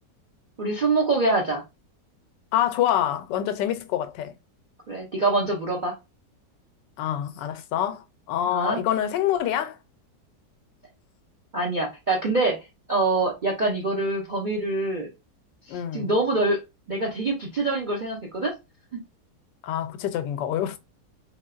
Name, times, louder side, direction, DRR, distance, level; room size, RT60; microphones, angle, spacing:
voice 1, 0.6-1.6 4.9-5.9 8.5-8.8 11.5-12.6 12.9-15.1 15.7-16.6 16.9-18.5 18.9-19.0, right 2 dB, 60° right, 0.5 m, -25 dB
voice 2, 2.5-4.3 7.0-9.8 15.7-16.1 19.6-20.8, left 11 dB, 85° left, 1.2 m, -26 dB
3.1 x 2.9 x 2.3 m
omnidirectional pair, 1.9 m